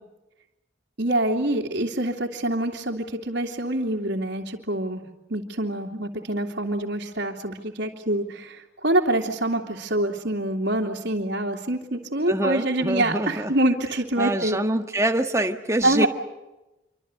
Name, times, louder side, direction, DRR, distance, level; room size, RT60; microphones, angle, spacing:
voice 1, 1.0-5.0 5.3-14.6 15.8-16.1, right 1 dB, 65° right, 2.9 m, -25 dB
voice 2, 12.3-13.5 14.2-16.1, right 1 dB, 15° right, 1.6 m, -25 dB
27.5 x 25.0 x 8.0 m
head